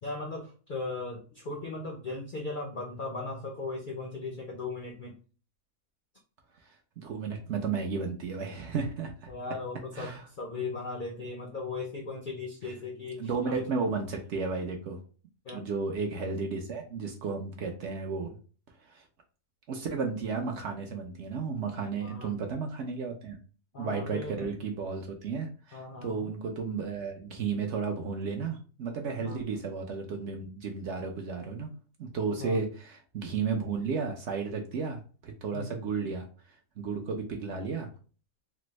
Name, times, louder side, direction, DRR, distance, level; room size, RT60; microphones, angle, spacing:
voice 1, 0.0-5.1 9.3-13.6 15.4-15.6 22.0-22.4 23.7-24.5 25.7-26.3 29.2-29.4 32.4-32.6 35.5-35.7, left 3 dB, 60° left, 0 dB, 0.5 m, -37 dB
voice 2, 7.0-9.3 9.9-10.2 12.6-12.7 13.2-15.0 15.5-18.4 18.9-19.0 19.7-23.4 23.8-31.7 32.0-36.2 36.8-37.9, right 5 dB, 65° right, 3 dB, 0.8 m, -33 dB
3.4 x 2.0 x 3.0 m, 0.38 s
omnidirectional pair, 1.5 m